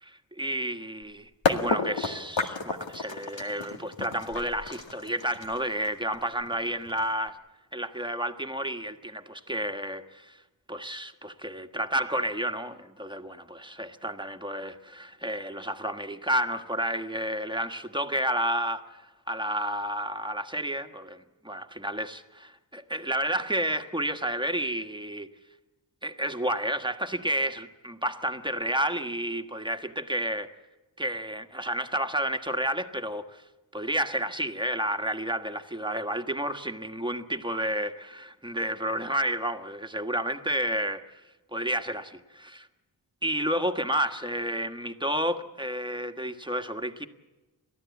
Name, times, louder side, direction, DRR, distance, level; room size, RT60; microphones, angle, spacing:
voice 1, 0.0-7.4 7.7-10.4 10.7-25.3 26.0-30.5 31.0-33.4 33.7-41.2 41.5-42.7 43.2-47.1, right 1 dB, 10° right, 1.4 m, -31 dB
sound 1, 1.0-1.1 1.4-7.3, left 4 dB, 80° left, 2.1 m, -31 dB
30.0 x 13.5 x 8.4 m
wide cardioid pair, 85°, 44 cm